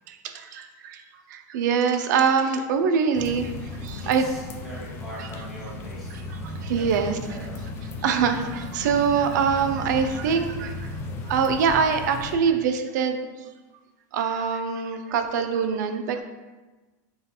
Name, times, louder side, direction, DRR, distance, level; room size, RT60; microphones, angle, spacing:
voice 1, 0.1-1.0 1.3-3.5 3.8-4.3 5.2-5.3 6.1-7.4 8.0-10.9 11.3-13.3 14.1-16.2, right 6 dB, 85° right, 7 dB, 0.4 m, -24 dB
sound 1, 3.1-12.4, left 2 dB, 25° left, 0.4 m, -35 dB
voice 2, 4.0-6.1 6.5-7.6, right 1 dB, ahead, -10 dB, 1.1 m, -42 dB
5.5 x 2.3 x 2.8 m, 1.2 s
supercardioid pair, 155°, 10 cm